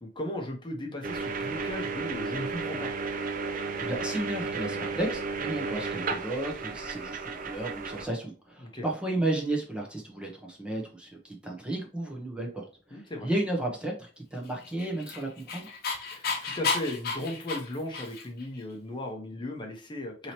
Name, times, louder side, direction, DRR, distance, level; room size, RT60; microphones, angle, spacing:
voice 1, 0.0-2.9 8.6-8.8 12.9-13.3 16.1-20.3, left 1 dB, 25° left, 2 dB, 0.9 m, -36 dB
sound 1, 1.0-8.1, right 4 dB, 50° right, 0.5 m, -33 dB
voice 2, 3.5-15.7, right 1 dB, 5° right, 0 dB, 0.9 m, -33 dB
Dog, 14.6-18.4, left 4 dB, 55° left, 0.9 m, -32 dB
4.8 x 2.9 x 2.9 m, 0.37 s
head